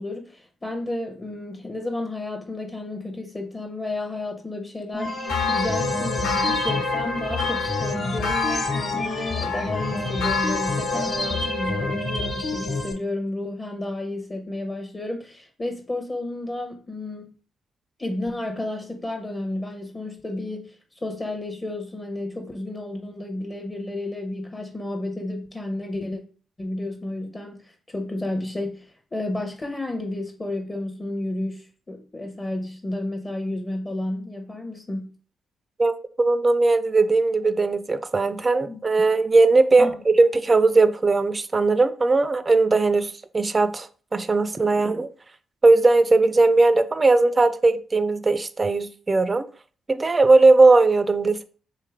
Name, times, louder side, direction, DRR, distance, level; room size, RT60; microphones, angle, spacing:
voice 1, 0.0-17.3 18.0-20.8 21.0-26.2 26.6-35.1 38.7-38.8 39.8-40.0, left 2 dB, 25° left, 3 dB, 0.7 m, -31 dB
sound 1, 4.9-12.9, left 2 dB, 40° left, 1.2 m, -28 dB
sound 2, 5.2-11.9, left 4 dB, 85° left, 0.5 m, -29 dB
voice 2, 35.8-45.1 45.6-49.5 49.9-51.4, right 3 dB, 35° right, 12 dB, 0.4 m, -19 dB
3.3 x 3.0 x 3.4 m, 0.41 s
hypercardioid pair, 50°, 0 cm